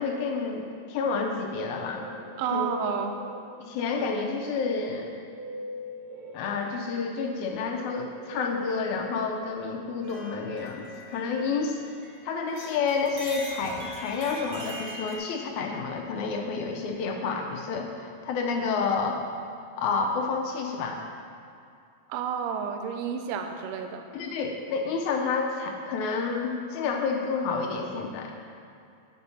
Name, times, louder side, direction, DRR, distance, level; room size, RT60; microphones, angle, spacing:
voice 1, 0.0-2.1 2.5-2.7 3.6-5.1 6.3-11.9 12.2-19.2 19.8-21.0 24.1-28.3, left 4 dB, 80° left, 2 dB, 2.1 m, -29 dB
Guitar, 1.3-3.8 4.6-10.0, left 1 dB, 40° right, 2.2 m, -42 dB
voice 2, 2.4-3.2 22.1-24.0, right 7 dB, 75° right, 5 dB, 1.6 m, -30 dB
sound 1, 10.0-12.2 12.5-15.2, equal, 60° right, 0.9 m, -42 dB
9.9 x 4.4 x 5.6 m, 2.5 s
omnidirectional pair, 3.4 m